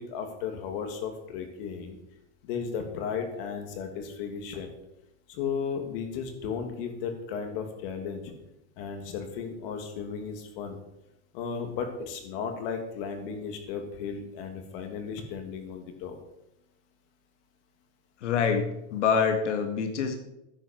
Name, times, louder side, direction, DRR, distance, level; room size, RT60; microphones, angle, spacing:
voice 1, 0.0-2.0 2.4-4.7 5.3-8.3 8.8-10.8 11.3-16.1, left 6 dB, 50° left, 5 dB, 2.8 m, -35 dB
voice 2, 18.2-20.2, left 6 dB, 85° left, 5 dB, 2.1 m, -26 dB
13.0 x 10.5 x 4.6 m, 0.88 s
supercardioid pair, 155°, 35 cm